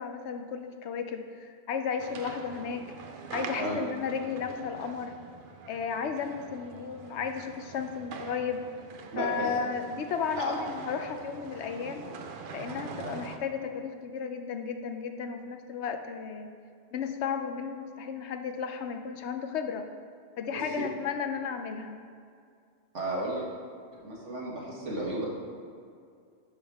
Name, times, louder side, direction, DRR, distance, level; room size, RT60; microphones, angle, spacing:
voice 1, 0.0-2.9 3.3-5.1 5.7-8.6 9.2-12.1 12.5-16.5 16.9-19.8 20.4-22.0, left 6 dB, 75° left, 7 dB, 0.9 m, -34 dB
sound 1, 2.0-13.4, right 4 dB, 55° right, 0.7 m, -43 dB
voice 2, 9.1-9.5 10.4-10.5 20.5-20.6 22.9-23.5 24.0-25.3, right 1 dB, 90° right, -4 dB, 1.9 m, -33 dB
10.0 x 5.4 x 3.5 m, 2.3 s
omnidirectional pair, 1.2 m